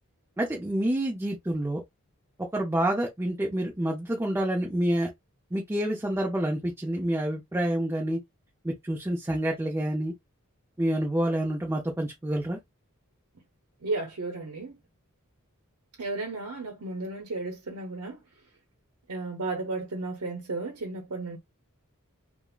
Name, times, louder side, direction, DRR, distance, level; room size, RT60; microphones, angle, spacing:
voice 1, 0.4-1.8 2.5-5.1 5.5-8.2 8.6-10.1 10.8-12.6, right 1 dB, 10° right, 0.5 m, -28 dB
voice 2, 13.8-14.7 16.0-18.2 19.1-21.4, right 3 dB, 80° right, 0.7 m, -33 dB
3.5 x 2.0 x 2.3 m
head